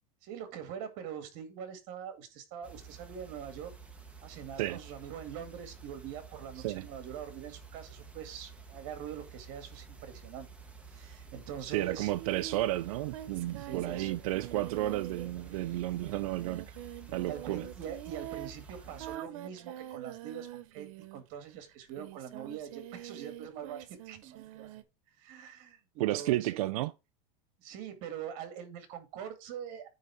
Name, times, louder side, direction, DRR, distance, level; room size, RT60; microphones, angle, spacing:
voice 1, 0.2-3.7 4.2-10.5 10.9-12.1 13.6-14.2 17.2-24.7 25.2-26.6 27.6-29.9, right 9 dB, 45° right, 2.0 m, -43 dB
sound 1, 2.6-19.2, right 5 dB, 5° right, 0.9 m, -51 dB
voice 2, 11.7-16.8 17.1-17.6 26.0-26.9, right 16 dB, 90° right, 0.5 m, -32 dB
Singing, 12.1-21.4 21.9-24.8, right 13 dB, 70° right, 1.0 m, -45 dB
9.4 x 3.6 x 5.6 m
supercardioid pair, 175°, 18 cm